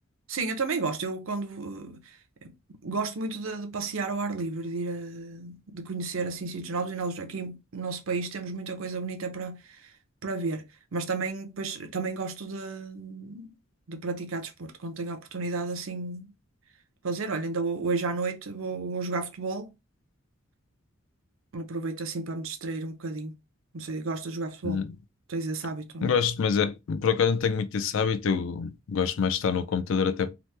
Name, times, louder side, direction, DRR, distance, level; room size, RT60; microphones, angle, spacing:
voice 1, 0.3-2.0 2.4-2.5 2.8-9.9 10.2-10.6 10.9-13.5 13.9-16.3 17.0-19.7 21.5-23.3 23.7-24.8 25.3-26.1, right 3 dB, 75° right, 0.6 m, -32 dB
voice 2, 26.0-30.3, left 6 dB, 65° left, 0.4 m, -26 dB
2.9 x 2.1 x 3.2 m
head